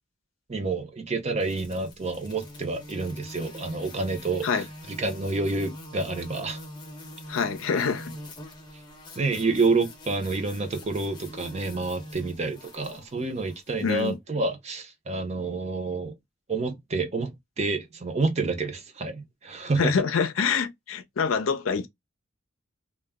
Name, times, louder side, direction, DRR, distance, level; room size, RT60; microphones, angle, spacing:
voice 1, 0.5-4.5 5.0-6.6 9.2-16.1 16.5-19.9, right 3 dB, 35° right, 0.5 m, -28 dB
sound 1, 1.4-14.1, left 1 dB, 25° left, 0.8 m, -44 dB
voice 2, 7.3-8.1 13.8-14.2 19.8-21.9, left 5 dB, 80° left, 0.5 m, -26 dB
2.2 x 2.0 x 3.4 m
head